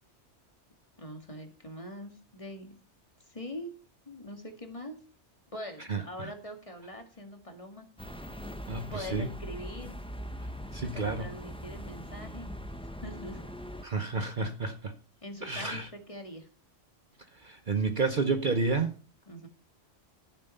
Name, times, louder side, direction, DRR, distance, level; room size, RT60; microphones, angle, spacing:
voice 1, 1.0-2.7 3.3-3.7 4.1-5.0 5.5-7.9 8.9-10.0 10.9-12.5 13.0-13.4 15.2-16.5 19.3-19.5, left 1 dB, 30° left, 2.1 m, -43 dB
voice 2, 5.9-6.3 8.7-9.3 10.7-11.3 13.8-14.9 15.4-15.9 17.4-19.0, right 4 dB, 45° right, 0.9 m, -30 dB
sound 1, 8.0-13.8, equal, 5° left, 0.9 m, -41 dB
14.0 x 7.5 x 5.5 m
omnidirectional pair, 1.2 m